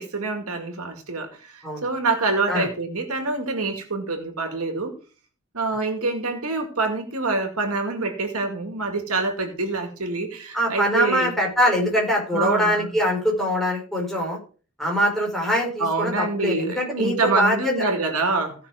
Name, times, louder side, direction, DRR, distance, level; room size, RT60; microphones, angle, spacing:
voice 1, 0.0-4.9 5.5-11.3 12.3-12.9 15.8-18.5, right 3 dB, 75° right, 5 dB, 2.2 m, -26 dB
voice 2, 10.5-14.4 14.8-17.7, equal, ahead, -2 dB, 4.7 m, -23 dB
16.0 x 6.0 x 4.9 m, 0.37 s
head